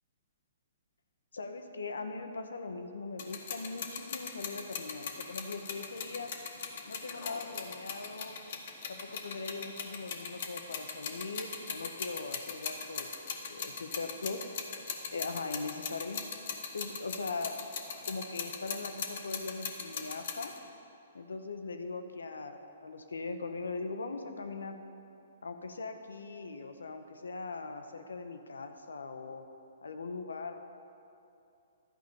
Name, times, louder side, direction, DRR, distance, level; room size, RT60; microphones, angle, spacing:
voice 1, 1.3-6.3 6.9-8.4 8.9-13.1 13.4-14.4 15.1-16.3 16.7-17.6 18.1-20.5 21.1-24.8 25.4-29.5 29.8-30.5, left 3 dB, 80° left, 7 dB, 0.9 m, -40 dB
sound 1, 3.2-20.6, left 6 dB, 55° left, 1.2 m, -40 dB
12.0 x 5.1 x 7.0 m, 2.7 s
hypercardioid pair, 130°, 0 cm